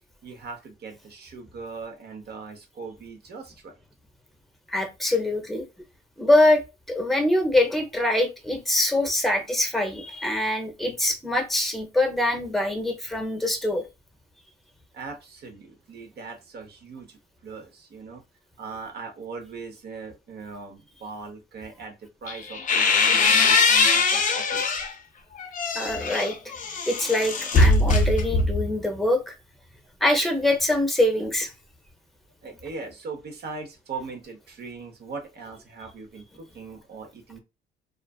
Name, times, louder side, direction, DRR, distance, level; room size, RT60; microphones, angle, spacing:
voice 1, 0.2-3.7 14.9-18.2 18.6-24.8 32.4-37.4, right 4 dB, 55° right, 4 dB, 0.9 m, -40 dB
voice 2, 4.7-5.7 6.2-13.8 25.7-26.4 26.9-29.3 30.0-31.5, left 1 dB, ahead, 4 dB, 0.7 m, -24 dB
sound 1, 22.3-24.9 25.4-28.7, left 3 dB, 40° left, 0.5 m, -21 dB
2.4 x 2.4 x 2.3 m, 0.25 s
cardioid pair, 90°, 20 cm